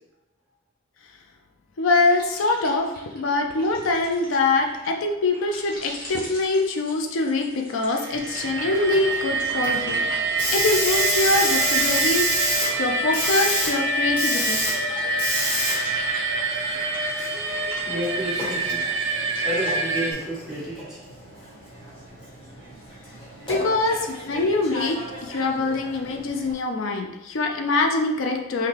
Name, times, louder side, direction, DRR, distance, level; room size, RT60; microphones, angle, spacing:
voice 1, 1.8-14.6 23.4-28.7, left 3 dB, 65° left, 3 dB, 0.5 m, -24 dB
sound 1, 2.0-14.2 14.6-19.7, left 1 dB, 45° left, 1.1 m, -42 dB
sound 2, 7.9-20.1, right 3 dB, 60° right, 0.5 m, -26 dB
Hiss, 8.1-26.5, left 1 dB, 25° left, 1.2 m, -30 dB
voice 2, 17.9-18.8 19.4-21.0, equal, ahead, -9 dB, 1.2 m, -30 dB
5.6 x 2.2 x 3.3 m, 1.0 s
head